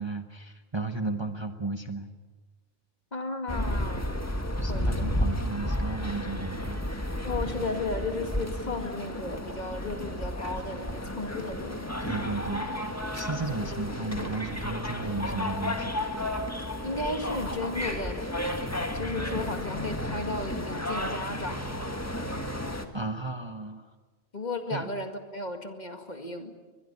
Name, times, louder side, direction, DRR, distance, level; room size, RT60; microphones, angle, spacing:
voice 1, 0.0-2.1 4.6-7.2 7.6-7.7 12.0-12.7 13.1-16.0 22.9-23.9 24.7-24.9, right 3 dB, 25° right, 7 dB, 1.1 m, -34 dB
voice 2, 3.1-4.2 4.7-5.1 7.2-11.8 16.8-21.6 24.3-26.5, left 2 dB, 40° left, 6 dB, 2.2 m, -34 dB
sound 1, 3.5-22.9, left 1 dB, 15° left, 1.7 m, -32 dB
22.5 x 21.5 x 8.4 m, 1.3 s
omnidirectional pair, 1.2 m